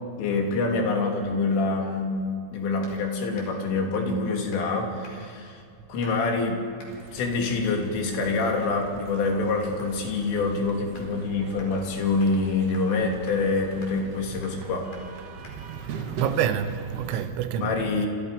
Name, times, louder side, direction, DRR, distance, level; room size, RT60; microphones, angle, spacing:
voice 1, 0.2-2.2 2.5-5.6 5.9-6.7 7.1-14.9 17.6-18.1, left 3 dB, 70° left, 5.6 m, -26 dB
sound 1, 2.8-3.0 3.3-3.6 3.9-4.2 4.5-4.7 5.0-5.4 6.0-6.3 6.8-7.0 7.5-7.7 8.1-8.3 8.7-9.0 9.2-9.4 9.8-11.1 11.6-11.7 12.2-12.4 12.7-12.9 13.3-13.4 13.8-13.9 14.4-14.6 14.9-15.1 15.4-15.6 16.0-16.1 16.4-16.6, left 1 dB, 45° left, 6.2 m, -50 dB
sound 2, 6.9-17.3, right 4 dB, 60° right, 2.4 m, -42 dB
voice 2, 15.7-17.7, right 9 dB, 80° right, 3.6 m, -28 dB
28.5 x 28.5 x 5.4 m
omnidirectional pair, 5.9 m